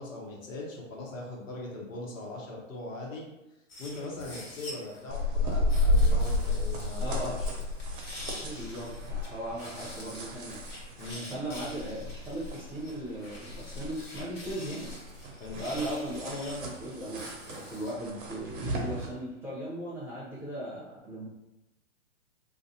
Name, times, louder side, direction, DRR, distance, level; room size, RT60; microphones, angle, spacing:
voice 1, 0.0-3.3 3.8-7.5 11.0-11.2 15.4-15.6, left 2 dB, 75° left, -2 dB, 1.0 m, -40 dB
sound 1, 3.7-5.0 5.7-9.3 9.6-17.9, left 1 dB, 50° left, 1.4 m, -47 dB
sound 2, 5.1-19.1, left 1 dB, 40° right, 0.6 m, -32 dB
voice 2, 7.0-7.4 8.4-10.6 11.1-14.9 15.6-21.3, right 1 dB, 5° right, -9 dB, 0.9 m, -38 dB
2.5 x 2.3 x 2.7 m, 0.95 s
hypercardioid pair, 125°, 39 cm